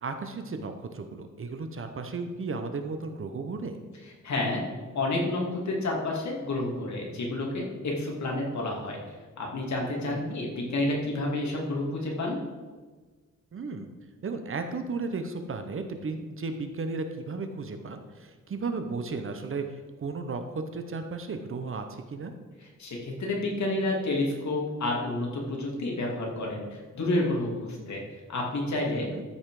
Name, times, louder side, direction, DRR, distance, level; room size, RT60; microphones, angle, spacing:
voice 1, 0.0-3.8 10.1-10.4 13.5-13.9 14.2-22.3 28.9-29.2, right 4 dB, 40° right, 7 dB, 0.9 m, -34 dB
voice 2, 4.2-4.6 4.9-9.0 9.4-12.4 22.8-28.0 28.3-29.1, left 2 dB, 60° left, -1 dB, 2.5 m, -29 dB
13.5 x 5.7 x 4.8 m, 1.4 s
wide cardioid pair, 155°, 32 cm